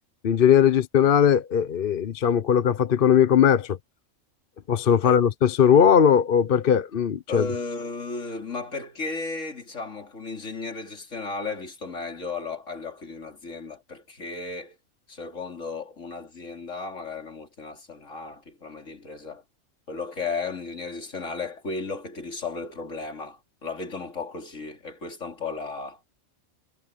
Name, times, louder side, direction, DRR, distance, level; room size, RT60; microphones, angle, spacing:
voice 1, 0.2-3.8 4.7-7.4, left 8 dB, 50° left, 0.9 m, -19 dB
voice 2, 7.3-14.8 15.1-19.4 19.9-26.0, left 3 dB, 70° left, 3.3 m, -34 dB
omnidirectional pair, 1.4 m